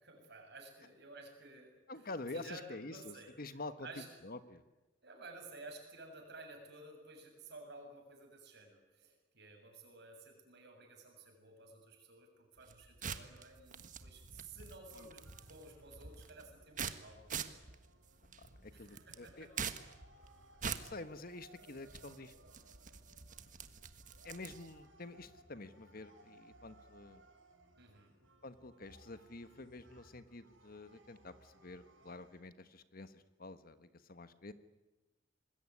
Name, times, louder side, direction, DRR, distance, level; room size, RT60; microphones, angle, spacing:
voice 1, 0.0-2.1 2.3-4.1 5.0-17.5 18.7-19.8 27.8-28.2, right 2 dB, 60° right, 3 dB, 7.3 m, -54 dB
voice 2, 1.9-3.9 4.2-4.6 15.0-15.1 18.6-19.5 20.6-22.8 24.2-27.2 28.4-34.5, left 2 dB, 50° left, 11 dB, 1.4 m, -48 dB
sound 1, 12.6-24.8, right 6 dB, 45° right, 1.5 m, -46 dB
sound 2, 15.2-32.4, right 1 dB, 90° right, 4.3 m, -64 dB
26.0 x 21.0 x 9.8 m, 1.1 s
head